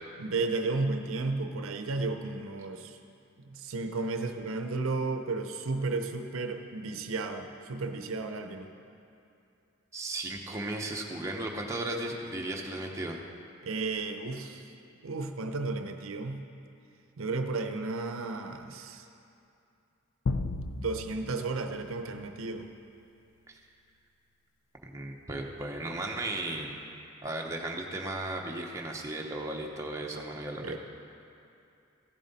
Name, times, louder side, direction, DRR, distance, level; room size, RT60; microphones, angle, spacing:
voice 1, 0.2-3.0 3.5-8.7 13.6-14.7 15.0-16.4 17.2-19.0 20.4-22.7 30.6-30.8, right 3 dB, 85° right, 6 dB, 0.6 m, -33 dB
voice 2, 9.9-13.2 23.5-23.6 24.8-26.7 27.2-30.8, right 2 dB, 15° right, -1 dB, 0.8 m, -35 dB
sound 1, 20.3-22.8, left 3 dB, 85° left, 0.5 m, -35 dB
15.0 x 7.3 x 4.1 m, 2.6 s
head